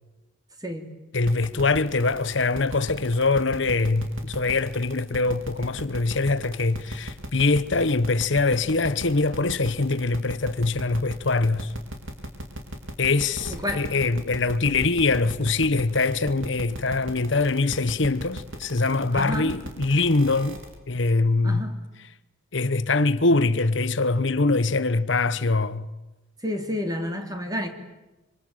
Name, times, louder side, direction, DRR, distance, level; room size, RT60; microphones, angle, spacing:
voice 1, 0.6-0.9 13.5-13.9 19.1-19.6 21.4-21.8 26.4-27.7, equal, 20° right, 3.4 m, -30 dB
voice 2, 1.1-11.7 13.0-20.6 20.9-21.6 22.5-25.9, left 3 dB, 65° left, 1.1 m, -23 dB
sound 1, 1.3-20.7, right 1 dB, 85° right, 4.6 m, -36 dB
25.5 x 25.5 x 9.0 m
head